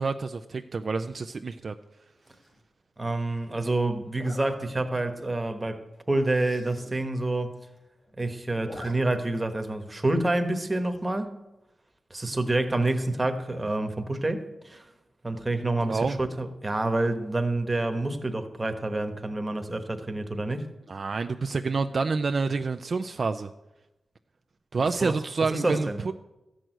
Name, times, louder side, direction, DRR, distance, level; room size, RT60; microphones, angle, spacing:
voice 1, 0.0-1.7 15.8-16.2 20.9-23.5 24.7-26.1, right 4 dB, 50° right, 8 dB, 0.4 m, -28 dB
Zipper (clothing), 2.2-2.6 4.1-4.5 5.1-5.3 5.6-5.7 5.9-6.0 6.3-6.9 7.3-7.4 7.6-8.1 8.4-8.9 9.3-9.4 10.7-11.1, left 2 dB, 45° left, 3.2 m, -45 dB
voice 2, 3.0-5.8 6.1-7.6 8.2-11.4 12.1-14.9 15.2-20.7 24.8-25.2 25.5-26.0, right 2 dB, 20° right, 7 dB, 1.2 m, -28 dB
13.5 x 6.3 x 9.0 m, 0.99 s
wide cardioid pair, 125°, 0 cm